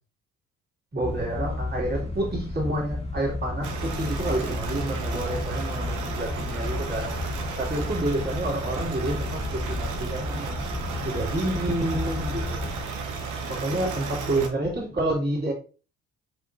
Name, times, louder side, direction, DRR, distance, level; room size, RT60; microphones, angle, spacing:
voice 1, 0.9-7.1 7.6-10.6 11.0-12.6 13.5-15.5, right 1 dB, 35° right, 2.4 m, -29 dB
sound 1, 1.0-12.8, left 2 dB, 20° left, 1.3 m, -32 dB
sound 2, 3.6-14.5, right 4 dB, 75° right, 1.0 m, -34 dB
5.0 x 3.8 x 2.5 m
cardioid pair, 90°, 30 cm